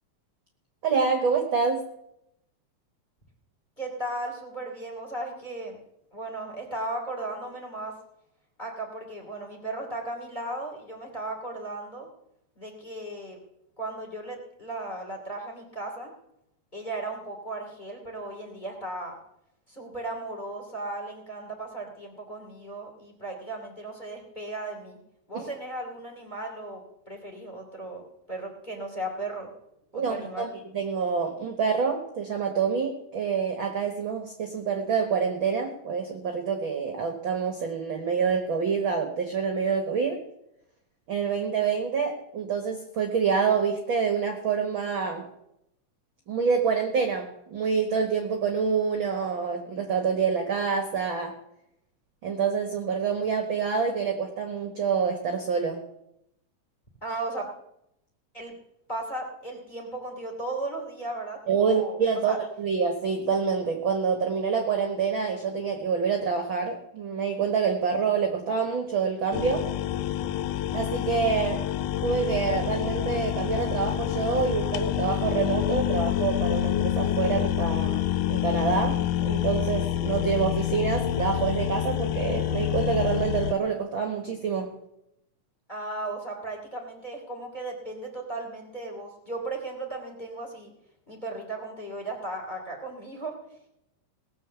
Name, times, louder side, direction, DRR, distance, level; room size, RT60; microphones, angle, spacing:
voice 1, 0.8-1.8 25.3-25.5 29.9-30.5 30.7-40.2 41.1-45.2 46.3-51.3 52.2-55.8 61.5-69.7 70.7-71.6 72.0-78.0 78.3-84.7, right 6 dB, 50° right, 5 dB, 1.6 m, -27 dB
voice 2, 3.8-5.8 6.1-7.9 8.6-12.1 12.5-13.4 13.8-16.1 16.7-19.2 19.7-25.0 25.3-28.0 28.3-29.5 29.9-30.5 57.0-57.5 58.3-58.6 58.9-62.0 62.2-62.4 85.7-90.7 91.1-93.4, right 2 dB, 15° left, 3 dB, 2.5 m, -36 dB
sound 1, 69.3-83.5, left 12 dB, 80° left, 2.2 m, -27 dB
18.5 x 7.4 x 7.0 m, 0.82 s
omnidirectional pair, 3.7 m